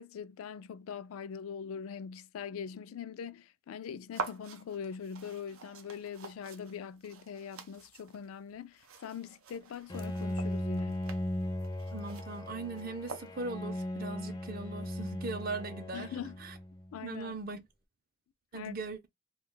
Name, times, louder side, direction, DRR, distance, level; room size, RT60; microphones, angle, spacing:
voice 1, 0.0-11.1 15.9-16.4 16.9-17.3 18.5-18.8, left 7 dB, 90° left, 0.3 m, -42 dB
sound 1, 4.1-13.7, right 4 dB, 90° right, 0.6 m, -46 dB
Bowed string instrument, 9.9-17.0, left 1 dB, 20° left, 0.4 m, -37 dB
voice 2, 11.9-16.1 16.4-16.6 17.0-17.6 18.5-19.1, right 3 dB, 45° right, 0.5 m, -39 dB
2.5 x 2.3 x 3.7 m
head